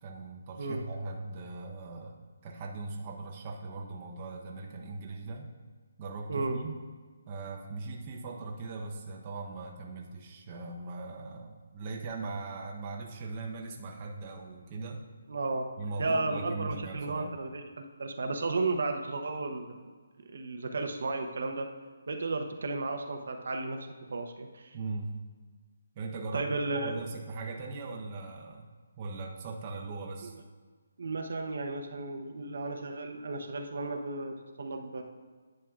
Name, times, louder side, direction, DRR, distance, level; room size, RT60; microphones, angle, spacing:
voice 1, 0.0-5.5 6.0-6.7 7.3-15.0 15.8-17.3 24.7-25.1 25.9-28.7 29.0-30.3, right 3 dB, 25° right, -1 dB, 0.8 m, -39 dB
voice 2, 6.3-6.6 15.3-15.7 16.0-19.9 20.3-21.7 22.1-24.8 26.3-27.0 30.2-30.3 31.0-35.0, right 3 dB, 65° right, 4 dB, 0.8 m, -34 dB
10.5 x 7.4 x 2.4 m, 1.4 s
hypercardioid pair, 170°, 0 cm